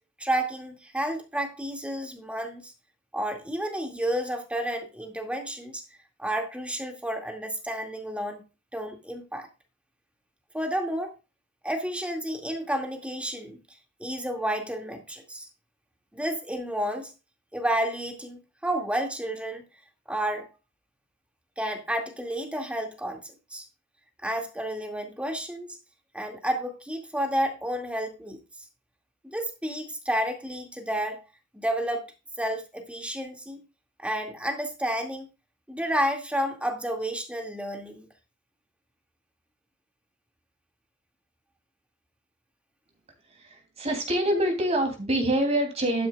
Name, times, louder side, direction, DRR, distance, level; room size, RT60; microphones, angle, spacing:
voice 1, 0.2-2.7 3.1-5.8 6.2-8.4 8.7-9.5 10.5-11.1 11.6-13.6 14.0-15.5 16.1-17.1 17.5-19.6 20.1-20.5 21.6-23.2 23.5-23.6 24.2-25.7 26.1-28.4 29.2-31.2 31.5-32.0 32.4-33.6 34.0-35.3 35.7-38.1, right 1 dB, 5° right, 4 dB, 2.2 m, -31 dB
voice 2, 43.4-46.1, right 1 dB, 30° right, 3 dB, 3.0 m, -25 dB
12.0 x 10.0 x 2.4 m, 0.29 s
head